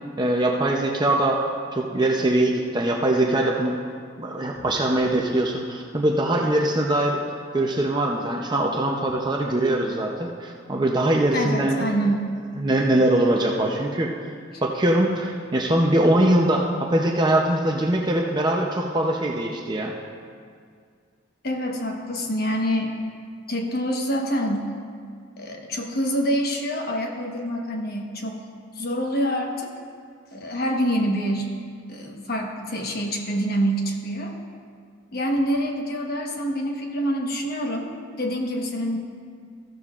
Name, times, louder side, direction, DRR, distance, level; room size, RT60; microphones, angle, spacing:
voice 1, 0.2-1.4 1.7-3.8 4.2-7.2 7.5-11.9 12.6-14.1 14.6-19.9, right 1 dB, 20° right, 0 dB, 0.6 m, -22 dB
voice 2, 11.3-12.3 14.5-14.6 21.4-22.9 23.5-24.7 25.4-28.4 28.7-29.7 30.3-31.5 31.9-34.3 35.1-37.9 38.2-39.0, equal, 55° left, 2 dB, 1.2 m, -26 dB
14.5 x 13.0 x 2.4 m, 2.1 s
head